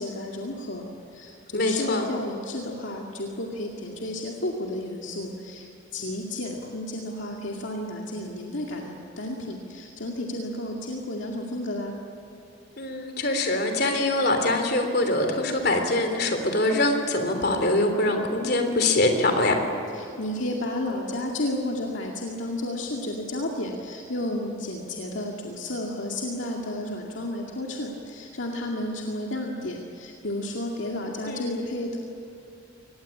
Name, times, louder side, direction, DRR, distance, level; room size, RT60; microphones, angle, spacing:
voice 1, 0.0-12.0 19.9-32.0, left 1 dB, 75° left, 0 dB, 2.3 m, -32 dB
voice 2, 1.5-2.1 12.8-19.5 31.3-31.8, left 2 dB, 55° left, 5 dB, 3.4 m, -24 dB
24.0 x 20.0 x 8.6 m, 2.8 s
head